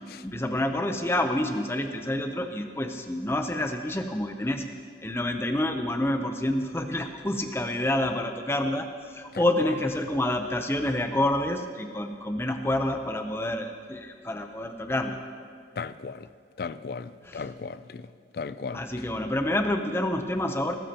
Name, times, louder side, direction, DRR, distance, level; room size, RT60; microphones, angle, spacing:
voice 1, 0.2-4.6 5.0-15.2 17.2-17.5 18.7-20.7, left 1 dB, 15° left, 0.7 m, -28 dB
voice 2, 15.8-16.3 16.6-18.0 18.3-18.8, left 5 dB, 55° left, 0.4 m, -35 dB
19.5 x 13.0 x 2.9 m
head